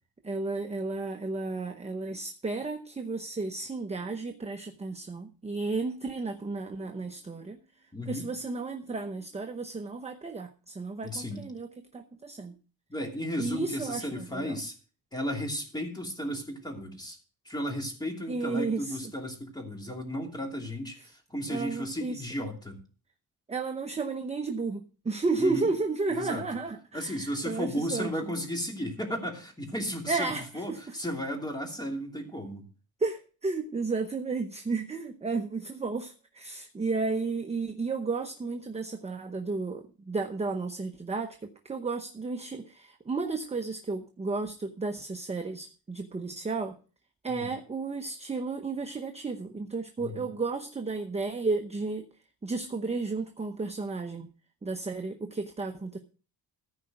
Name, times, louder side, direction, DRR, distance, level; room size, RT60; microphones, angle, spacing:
voice 1, 0.2-7.6 8.1-11.7 11.9-12.5 13.4-14.6 18.3-19.0 21.5-22.3 23.5-28.1 30.1-31.0 33.0-46.8 47.2-52.1 52.4-54.3 54.6-56.0, right 3 dB, 15° right, 5 dB, 0.8 m, -33 dB
voice 2, 7.9-8.3 11.0-11.4 12.9-14.7 15.1-17.2 17.4-22.8 25.4-25.7 26.1-26.5 26.9-32.7 47.3-47.5 50.0-50.3, equal, 10° left, 2 dB, 2.7 m, -34 dB
14.5 x 5.1 x 7.8 m, 0.37 s
wide cardioid pair, 145°, 41 cm